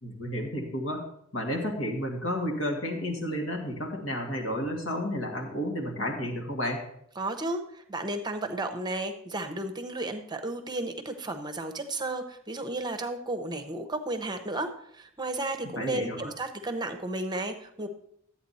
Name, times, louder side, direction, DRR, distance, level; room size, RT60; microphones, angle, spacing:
voice 1, 0.0-1.1 1.3-6.8 15.6-16.3, equal, 75° left, 1 dB, 2.1 m, -31 dB
voice 2, 7.2-17.9, right 2 dB, 20° right, 6 dB, 0.9 m, -33 dB
12.0 x 8.6 x 4.2 m, 0.70 s
head